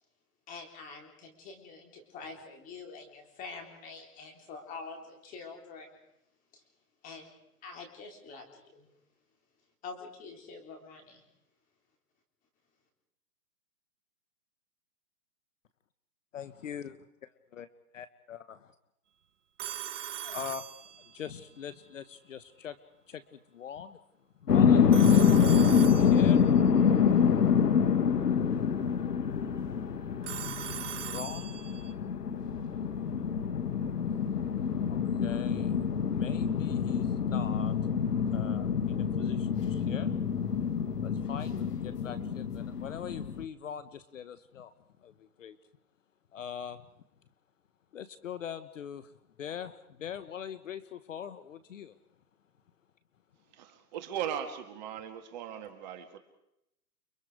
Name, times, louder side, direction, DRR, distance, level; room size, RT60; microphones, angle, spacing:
voice 1, 0.5-5.9 6.5-6.6 7.0-7.3 7.6-8.9 9.8-11.2, left 4 dB, 15° left, 3 dB, 3.9 m, -46 dB
voice 2, 16.3-17.0 17.5-17.7 17.9-18.7 20.2-20.7 21.1-22.8 23.1-24.0 24.4-26.4 28.4-28.5 31.1-31.6 34.9-35.8 36.2-37.7 38.3-40.1 41.0-44.7 45.0-45.6 46.3-46.8 47.9-49.1 49.4-51.9, left 8 dB, 55° left, 13 dB, 1.3 m, -42 dB
Telephone, 19.6-21.4 24.9-26.6 30.2-31.9, right 10 dB, 50° right, 1.0 m, -40 dB
sound 1, 24.5-43.4, left 7 dB, 80° left, 1.7 m, -26 dB
voice 3, 53.5-56.2, right 9 dB, 30° right, 6 dB, 2.0 m, -38 dB
30.0 x 23.5 x 4.9 m, 0.83 s
hypercardioid pair, 155°, 46 cm